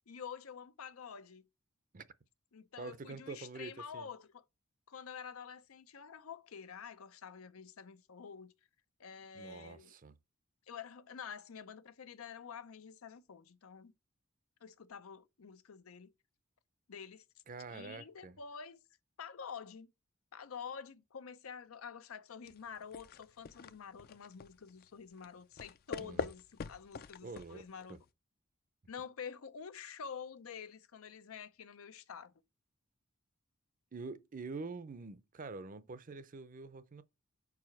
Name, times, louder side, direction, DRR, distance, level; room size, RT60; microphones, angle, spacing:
voice 1, 0.1-1.5 2.5-4.4 4.9-8.5 9.0-9.9 10.7-13.9 14.6-16.1 16.9-17.2 17.7-18.8 19.2-19.9 20.3-28.0 28.9-32.3, left 6 dB, 90° left, 0.6 m, -48 dB
voice 2, 2.8-4.1 9.3-10.2 17.5-18.4 26.0-26.3 27.2-27.6 27.9-28.0 33.9-37.0, right 3 dB, 40° right, 0.5 m, -46 dB
sound 1, 22.4-28.1, left 5 dB, 45° left, 0.4 m, -45 dB
4.8 x 4.7 x 5.8 m
head